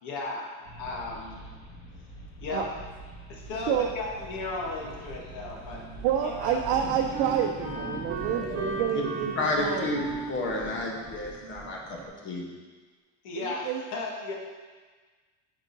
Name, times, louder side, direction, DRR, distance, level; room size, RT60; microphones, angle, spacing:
voice 1, 0.0-0.4 0.8-1.4 2.4-2.7 3.3-5.8 6.2-6.7 13.2-14.3, left 3 dB, 60° left, -2 dB, 1.4 m, -35 dB
sound 1, 0.6-8.7, right 1 dB, 90° left, 1.9 m, -44 dB
sound 2, 3.6-12.1, right 1 dB, ahead, 0.9 m, -44 dB
Wind instrument woodwind instrument, 5.2-12.5, right 4 dB, 45° right, 1.0 m, -39 dB
voice 2, 6.0-10.0 11.8-12.0 13.4-13.8, right 9 dB, 80° right, 2 dB, 0.6 m, -28 dB
voice 3, 9.4-12.0 12.2-12.5, left 2 dB, 35° left, -1 dB, 1.0 m, -30 dB
9.0 x 4.8 x 2.7 m, 1.4 s
cardioid pair, 165°, 34 cm